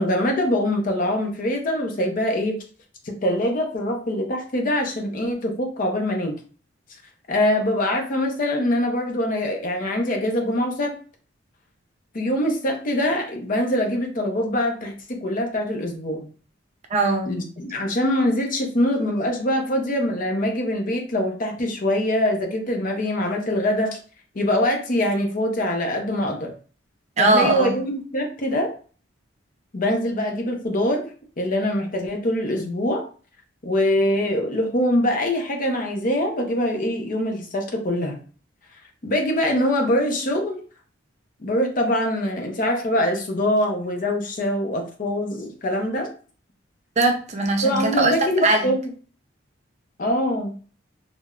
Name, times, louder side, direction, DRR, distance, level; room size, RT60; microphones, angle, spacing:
voice 1, 0.0-2.6 3.0-6.4 7.3-10.9 12.1-16.3 17.3-24.0 24.3-26.5 27.2-28.7 29.7-31.1 31.4-33.0 33.6-38.2 39.0-40.6 41.4-46.1 47.6-48.8 50.0-50.5, left 1 dB, 45° left, 0.6 m, -23 dB
voice 2, 16.9-17.4 27.2-27.8 47.0-48.7, right 2 dB, 35° right, 0.4 m, -20 dB
3.3 x 2.1 x 2.3 m
head